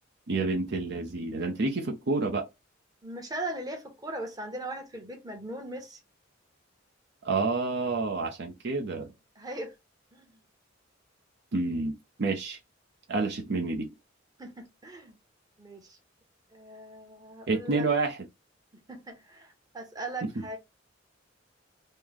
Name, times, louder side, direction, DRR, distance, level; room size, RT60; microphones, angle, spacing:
voice 1, 0.3-2.5 7.2-9.1 11.5-12.6 13.1-13.9 17.5-18.2, right 3 dB, 60° right, 0.6 m, -29 dB
voice 2, 3.0-6.0 9.4-9.7 10.1-10.4 14.4-15.2 15.6-16.0 16.5-17.9 18.7-20.6, right 1 dB, 20° right, 1.0 m, -39 dB
3.1 x 2.1 x 3.6 m
head